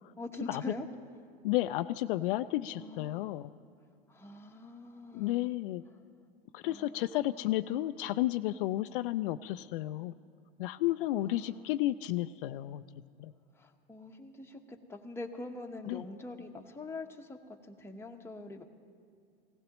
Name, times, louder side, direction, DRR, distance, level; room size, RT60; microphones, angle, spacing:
voice 1, 0.2-0.9 2.7-3.4 4.1-5.5 6.6-7.5 11.2-11.7 13.5-18.6, left 2 dB, 10° left, 2 dB, 1.2 m, -44 dB
voice 2, 1.4-3.5 5.1-5.8 6.5-10.1 10.6-12.8 13.2-13.3 15.9-16.0, left 15 dB, 65° left, 11 dB, 0.5 m, -32 dB
19.0 x 17.0 x 3.1 m, 2.3 s
hypercardioid pair, 90°, 29 cm